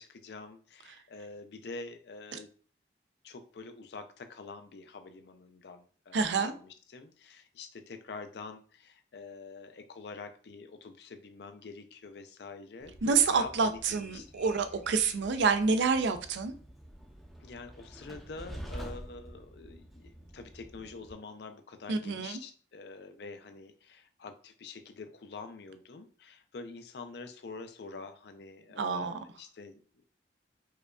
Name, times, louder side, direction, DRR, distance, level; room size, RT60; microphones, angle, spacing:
voice 1, 0.0-2.5 3.2-14.4 17.4-30.0, left 4 dB, 65° left, 8 dB, 0.5 m, -46 dB
voice 2, 6.1-6.5 13.0-16.5 21.9-22.4 28.8-29.2, right 5 dB, 85° right, 9 dB, 0.4 m, -28 dB
Train, 12.8-21.1, equal, ahead, 0.5 m, -48 dB
4.8 x 2.2 x 2.4 m, 0.43 s
head